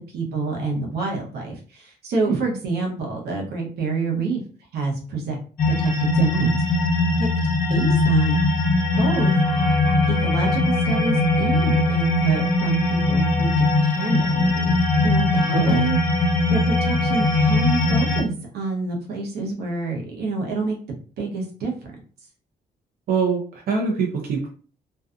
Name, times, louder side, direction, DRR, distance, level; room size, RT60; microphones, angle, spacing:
voice 1, 0.1-4.4 4.7-5.4 5.7-6.6 7.2-7.3 7.7-8.4 9.0-9.3 10.1-13.5 13.8-14.8 15.0-16.0 16.5-20.8 21.2-21.7, right 3 dB, 85° right, 0 dB, 0.9 m, -27 dB
sound 1, 5.6-18.2, left 2 dB, 60° left, 0.8 m, -20 dB
voice 2, 15.5-15.8 23.1-24.5, right 5 dB, 65° right, 0 dB, 0.6 m, -23 dB
2.6 x 2.3 x 2.4 m, 0.40 s
cardioid pair, 120°, 16 cm